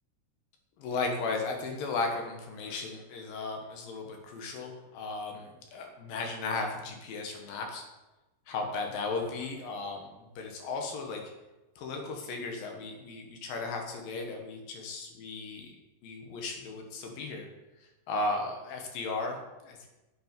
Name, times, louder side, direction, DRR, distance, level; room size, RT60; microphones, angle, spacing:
voice 1, 0.8-7.8 8.5-11.3 11.8-15.8 16.0-17.5 18.1-19.9, left 3 dB, 70° left, 2 dB, 2.8 m, -35 dB
9.6 x 5.6 x 5.2 m, 1.1 s
omnidirectional pair, 4.7 m